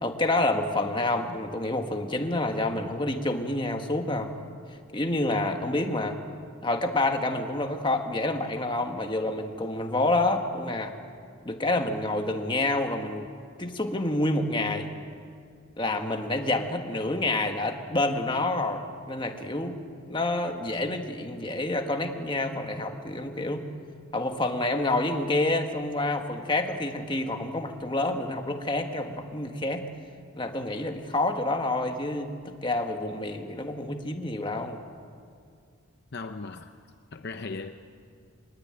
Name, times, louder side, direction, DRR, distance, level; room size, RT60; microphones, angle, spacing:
voice 1, 0.0-4.3 4.9-6.2 6.6-11.0 11.4-13.3 13.6-14.9 15.8-19.8 20.1-23.6 24.1-29.8 30.3-34.8, left 2 dB, 20° left, 1.5 m, -28 dB
voice 2, 36.1-36.7 37.1-37.7, left 3 dB, 50° left, 0.7 m, -37 dB
23.0 x 21.0 x 9.0 m
head